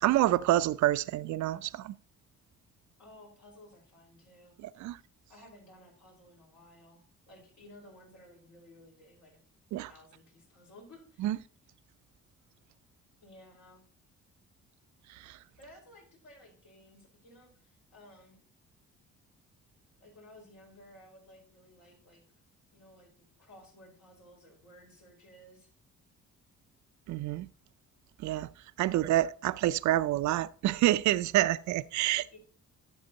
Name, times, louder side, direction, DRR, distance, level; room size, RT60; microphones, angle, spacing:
voice 1, 0.0-1.9 4.6-5.0 9.7-9.9 11.2-11.4 15.1-15.4 27.1-27.5 28.2-28.5 28.8-32.4, right 14 dB, 70° right, 0.4 m, -28 dB
voice 2, 3.0-4.9 5.3-9.4 9.9-11.3 13.2-13.8 15.6-18.4 20.0-22.2 22.7-23.1 23.4-25.7 28.8-29.2 32.3-32.4, left 1 dB, 70° left, 4.8 m, -56 dB
12.0 x 7.2 x 2.8 m
cardioid pair, 90°, 30 cm